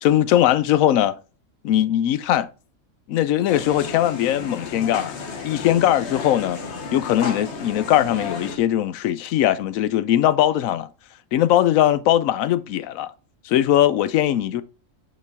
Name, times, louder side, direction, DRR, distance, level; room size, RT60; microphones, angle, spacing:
voice 1, 0.0-1.2 1.6-2.5 3.1-5.2 5.4-6.6 6.9-10.9 11.3-13.1 13.4-14.6, left 12 dB, 90° left, 1.0 m, -20 dB
sound 1, 3.5-8.6, left 4 dB, 60° left, 1.2 m, -33 dB
6.2 x 5.2 x 3.5 m
omnidirectional pair, 1.4 m